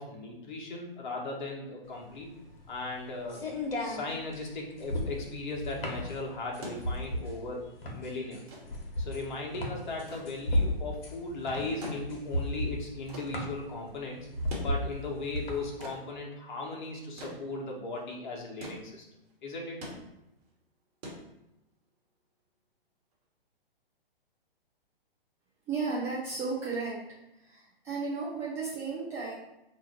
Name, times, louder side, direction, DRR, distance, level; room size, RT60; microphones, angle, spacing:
voice 1, 0.0-2.3 2.7-3.4 3.8-8.4 9.0-14.3 14.6-19.0 19.4-19.8, left 2 dB, 50° left, 0 dB, 1.0 m, -37 dB
sound 1, 1.9-15.8, left 1 dB, 75° left, 1.0 m, -34 dB
sound 2, 6.6-21.9 23.1-23.2, right 1 dB, 40° right, 1.3 m, -47 dB
voice 2, 25.7-27.0 27.3-29.4, right 4 dB, 10° right, -8 dB, 0.3 m, -34 dB
2.8 x 2.4 x 4.2 m, 0.89 s
hypercardioid pair, 130°, 30 cm